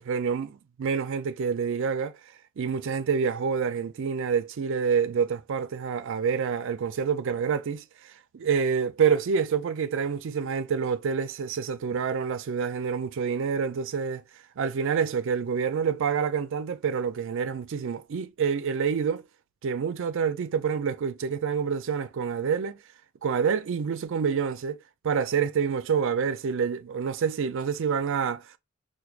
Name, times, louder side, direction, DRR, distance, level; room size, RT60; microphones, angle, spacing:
voice 1, 0.0-2.1 2.6-14.2 14.6-19.2 19.6-22.8 23.2-24.8 25.0-28.6, right 6 dB, 60° right, 0.4 m, -27 dB
4.5 x 2.2 x 2.4 m
head